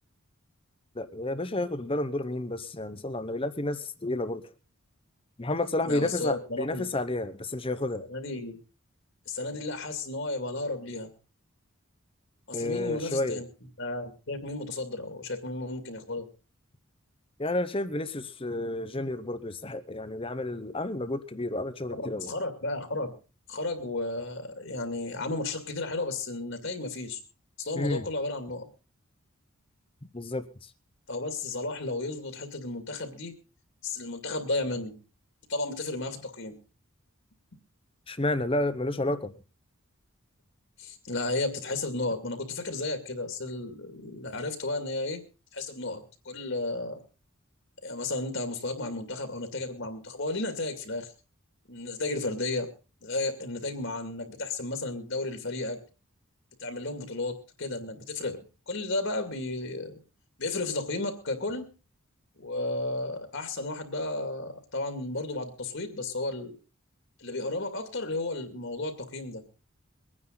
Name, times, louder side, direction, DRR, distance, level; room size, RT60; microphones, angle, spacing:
voice 1, 0.9-4.5 5.4-8.1 12.5-13.4 17.4-22.3 27.7-28.1 30.1-30.5 38.1-39.4, left 2 dB, 25° left, 0.9 m, -31 dB
voice 2, 5.8-6.9 8.1-8.6 9.3-11.1 12.5-13.4 13.8-16.3 21.9-23.1 23.5-27.2 27.6-28.7 31.1-33.3 33.8-34.9 35.5-36.5 40.8-45.2 45.5-47.0 47.8-51.1 51.7-52.7 53.0-55.8 56.6-58.4 58.7-60.0 60.4-61.7 62.4-66.5 67.2-69.4, left 2 dB, 60° left, 2.4 m, -33 dB
23.5 x 9.8 x 3.9 m
head